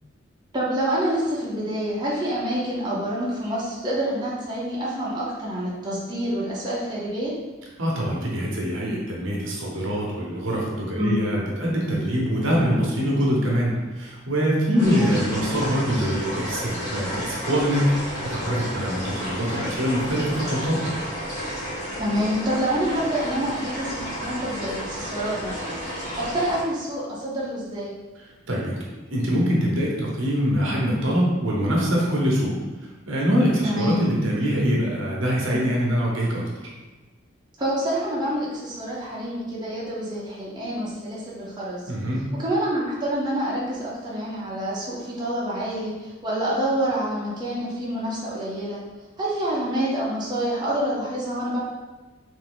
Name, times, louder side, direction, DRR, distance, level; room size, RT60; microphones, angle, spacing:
voice 1, 0.5-7.3 10.9-11.2 13.4-13.5 14.7-15.1 22.0-27.9 33.6-34.0 37.6-41.8 42.3-48.8 49.2-51.6, equal, 20° right, -7 dB, 0.8 m, -27 dB
voice 2, 7.8-20.9 28.5-28.8 29.1-32.5 33.1-36.4 41.9-42.2, equal, 85° right, -3 dB, 1.0 m, -24 dB
sound 1, 14.8-26.6, equal, 15° left, 1.1 m, -32 dB
3.4 x 2.7 x 3.8 m, 1.2 s
head